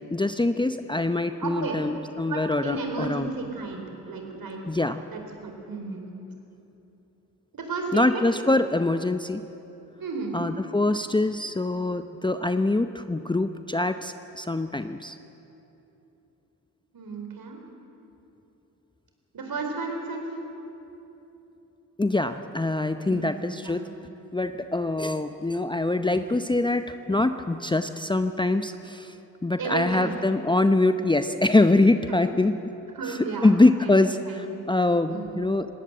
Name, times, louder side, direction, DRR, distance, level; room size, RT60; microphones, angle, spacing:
voice 1, 0.1-3.3 4.7-5.0 7.9-9.4 10.3-15.2 22.0-23.9 24.3-29.1 29.4-32.5 33.4-35.7, left 2 dB, 10° left, 9 dB, 0.8 m, -24 dB
voice 2, 1.4-1.8 2.3-4.6 5.1-6.1 7.5-8.2 10.0-10.3 16.9-17.6 19.3-20.4 23.0-23.3 23.6-23.8 29.6-30.2 32.1-32.2 32.9-33.5 33.8-34.5 35.1-35.3, right 4 dB, 55° right, 3 dB, 4.7 m, -33 dB
20.0 x 17.5 x 8.0 m, 3.0 s
hypercardioid pair, 45°, 42 cm